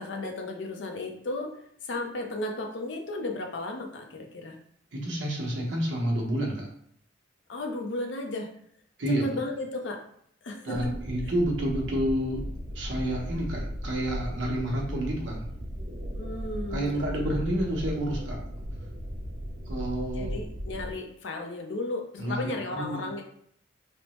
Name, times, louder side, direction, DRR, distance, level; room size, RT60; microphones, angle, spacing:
voice 1, 0.0-1.5 1.8-4.6 7.5-8.5 9.2-10.0 10.4-10.9 16.1-17.5 20.2-23.2, left 2 dB, 70° left, 3 dB, 0.5 m, -34 dB
voice 2, 4.9-6.7 9.0-9.3 10.6-12.4 12.7-15.4 16.7-18.4 19.7-20.4 22.2-23.1, right 1 dB, 80° right, -1 dB, 0.8 m, -29 dB
sound 1, 10.7-20.9, equal, 50° right, 0.4 m, -36 dB
3.2 x 2.0 x 2.9 m, 0.65 s
head